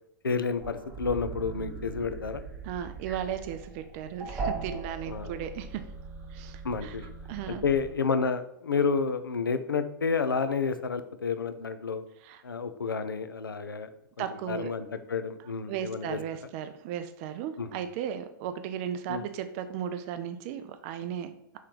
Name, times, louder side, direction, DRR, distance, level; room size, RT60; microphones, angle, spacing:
voice 1, 0.2-2.4 5.1-5.4 6.6-7.0 7.5-12.0 12.4-13.9 14.2-16.2 17.6-17.7 19.1-19.2, left 5 dB, 80° left, 10 dB, 0.4 m, -30 dB
sound 1, 0.6-7.9, right 4 dB, 10° right, 0.9 m, -39 dB
voice 2, 2.6-5.8 6.3-7.0 7.3-7.6 12.2-12.4 14.2-14.7 15.7-21.6, right 9 dB, 35° right, 9 dB, 0.4 m, -36 dB
3.2 x 3.1 x 3.9 m, 0.76 s
figure-of-eight pair, 100°, 11 cm